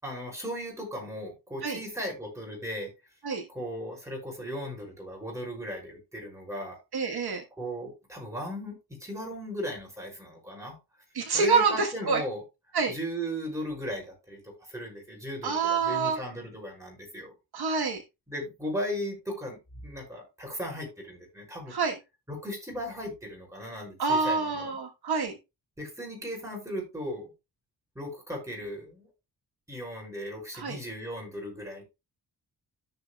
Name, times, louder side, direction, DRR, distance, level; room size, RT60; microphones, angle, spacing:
voice 1, 0.0-2.9 3.5-6.8 7.6-10.8 11.3-12.4 12.9-17.3 18.3-21.7 22.3-24.8 25.8-27.3 27.9-29.1 29.7-31.8, equal, 5° right, 0 dB, 5.9 m, -37 dB
voice 2, 6.9-7.4 11.1-12.2 12.7-13.0 15.4-16.2 17.5-18.0 21.7-21.9 24.0-25.3 30.5-30.8, right 4 dB, 70° right, 3 dB, 1.4 m, -27 dB
14.0 x 6.1 x 2.3 m, 0.25 s
wide cardioid pair, 125°, 39 cm